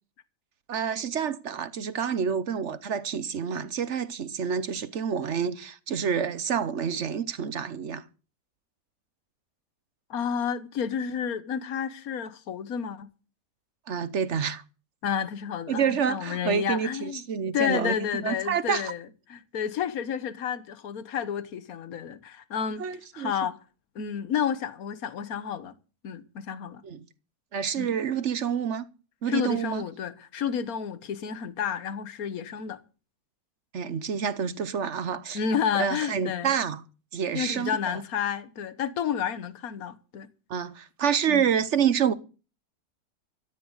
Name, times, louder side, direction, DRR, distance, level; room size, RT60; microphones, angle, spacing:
voice 1, 0.7-8.0 13.9-14.6 15.7-18.9 22.8-23.3 26.8-27.0 27.5-28.9 29.2-29.8 33.7-35.4 35.7-36.8 37.1-38.0 40.5-42.1, right 7 dB, 55° right, 1.0 m, -28 dB
voice 2, 10.1-13.1 15.0-17.2 17.5-22.8 23.1-23.6 23.9-25.7 26.0-26.8 27.8-27.9 29.3-32.8 35.3-36.5 37.3-40.3 41.3-41.5, left 8 dB, 65° left, 1.5 m, -30 dB
15.0 x 15.0 x 4.0 m
omnidirectional pair, 1.7 m